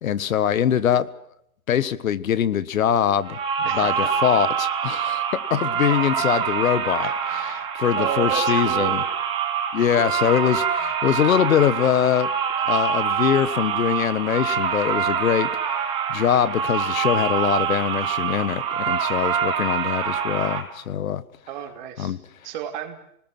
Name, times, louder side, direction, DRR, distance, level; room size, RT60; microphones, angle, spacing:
voice 1, 0.0-1.1 1.7-3.4 3.7-9.0 9.7-12.3 12.6-15.5 16.1-21.2 22.0-22.2, left 9 dB, 70° left, 16 dB, 1.5 m, -23 dB
sound 1, 3.2-20.6, right 7 dB, 10° right, 2.3 m, -25 dB
voice 2, 3.6-4.4 7.0-7.2 7.8-9.0 9.8-10.1 21.5-22.2 22.4-23.0, right 10 dB, 35° right, 6 dB, 2.9 m, -33 dB
26.0 x 20.0 x 7.8 m, 0.74 s
hypercardioid pair, 170°, 42 cm